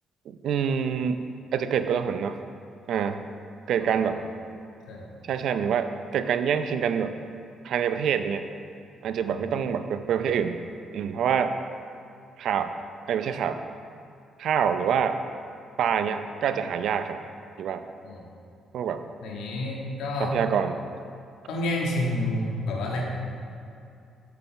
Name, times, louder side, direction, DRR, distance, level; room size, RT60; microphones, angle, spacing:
voice 1, 0.3-1.2 1.5-2.4 2.9-3.2 3.7-4.1 5.2-7.1 7.6-8.4 9.0-10.6 10.9-11.5 12.4-12.7 13.1-13.6 14.4-15.2 15.8-17.2 17.6-17.8 18.7-19.0 20.2-20.8, right 7 dB, 75° right, 9 dB, 0.5 m, -26 dB
voice 2, 19.2-20.4 21.5-23.1, left 1 dB, 90° left, -1 dB, 1.6 m, -29 dB
6.9 x 6.4 x 6.9 m, 2.5 s
cardioid pair, 90°, 0 cm